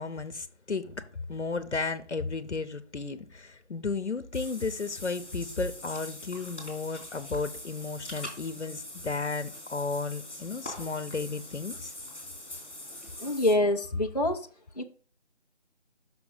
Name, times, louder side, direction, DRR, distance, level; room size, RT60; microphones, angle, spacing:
voice 1, 0.0-11.9, left 4 dB, 85° left, 0.8 m, -34 dB
Water / Bathtub (filling or washing), 4.3-13.5, left 1 dB, ahead, 1.1 m, -43 dB
voice 2, 13.2-14.5 14.7-14.8, left 1 dB, 40° left, 0.5 m, -26 dB
6.1 x 5.8 x 3.9 m
figure-of-eight pair, 165°, 34 cm